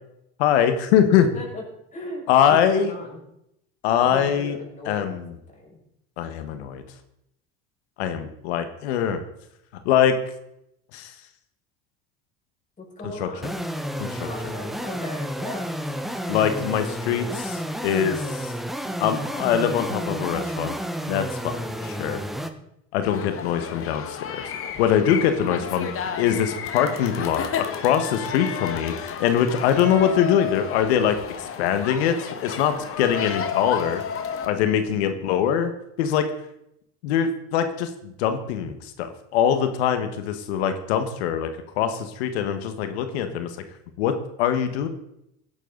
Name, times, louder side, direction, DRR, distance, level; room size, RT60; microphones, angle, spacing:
voice 1, 0.4-1.3 2.3-2.9 3.8-4.6 4.8-5.3 6.2-6.8 8.0-9.2 9.8-10.2 10.9-11.1 13.0-13.3 14.0-14.3 16.3-18.5 19.0-20.8 21.1-22.2 22.9-24.4 24.8-25.9 26.2-34.0 34.4-35.7 36.0-36.3 37.0-41.5 41.8-43.6 44.0-44.9, left 9 dB, 90° left, 8 dB, 1.5 m, -23 dB
voice 2, 1.9-3.2 4.0-5.8 12.8-13.5 14.0-15.6 21.7-22.1, left 1 dB, 25° left, -3 dB, 6.6 m, -38 dB
sound 1, 13.4-22.5, equal, ahead, 1.1 m, -31 dB
sound 2, 23.0-34.5, left 7 dB, 45° left, 1.6 m, -32 dB
17.0 x 10.5 x 4.0 m, 0.79 s
supercardioid pair, 105°, 32 cm